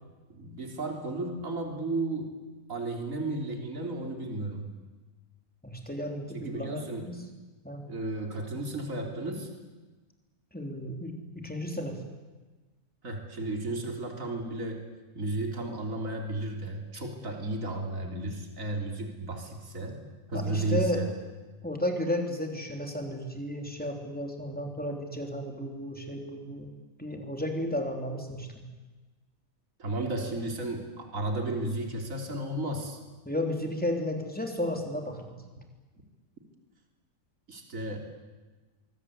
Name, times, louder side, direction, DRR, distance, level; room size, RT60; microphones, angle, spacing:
voice 1, 0.3-2.4 2.7-4.7 6.3-7.1 7.9-9.5 13.0-14.8 15.2-21.1 29.8-33.0 37.5-38.0, right 2 dB, 50° right, 3 dB, 3.7 m, -33 dB
voice 2, 5.6-7.2 7.6-7.8 10.5-12.0 20.3-21.0 21.6-26.7 27.0-28.6 33.3-35.4, left 1 dB, 5° left, 3 dB, 3.6 m, -33 dB
25.5 x 23.0 x 8.3 m, 1.2 s
omnidirectional pair, 1.8 m